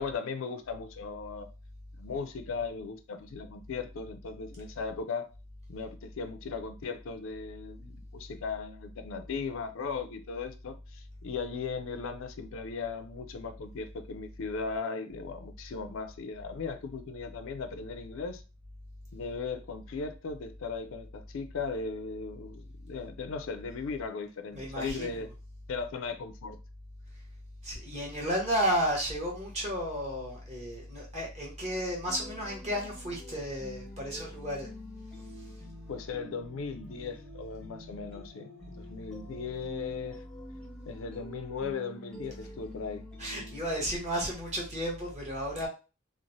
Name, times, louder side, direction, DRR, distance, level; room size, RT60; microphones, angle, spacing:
voice 1, 0.0-1.5 1.9-5.3 5.7-18.4 19.1-25.3 25.7-26.6 35.9-40.2 40.9-43.1, left 5 dB, 70° left, 0.4 m, -37 dB
voice 2, 24.5-25.2 27.6-34.7 43.2-45.7, equal, 35° right, 1.0 m, -33 dB
sound 1, 32.1-43.6, equal, 5° left, 0.6 m, -48 dB
3.0 x 2.0 x 2.6 m
head